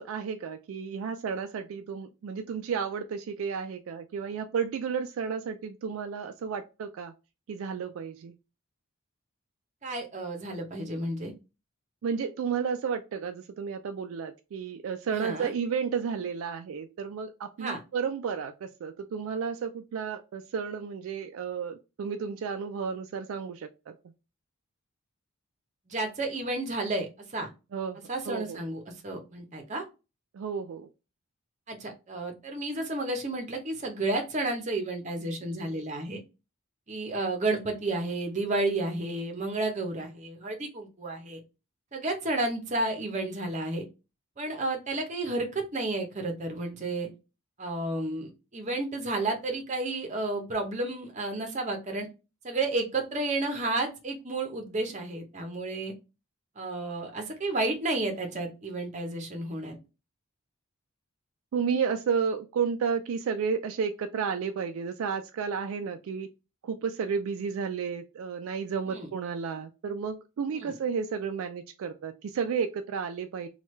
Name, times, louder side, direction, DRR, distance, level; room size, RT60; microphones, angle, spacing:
voice 1, 0.0-7.1 7.5-8.3 12.0-23.9 27.7-28.0 28.3-28.6 30.3-30.9 61.5-66.3 66.6-73.5, right 6 dB, 70° right, 7 dB, 0.3 m, -32 dB
voice 2, 9.8-11.3 15.1-15.5 17.6-17.8 25.9-27.5 28.1-29.8 31.7-36.2 36.9-41.4 41.9-43.8 44.4-47.1 47.6-52.1 52.4-55.9 56.6-59.8 68.9-69.1 70.6-70.7, right 2 dB, 30° right, 3 dB, 0.7 m, -31 dB
3.0 x 2.3 x 3.1 m, 0.29 s
head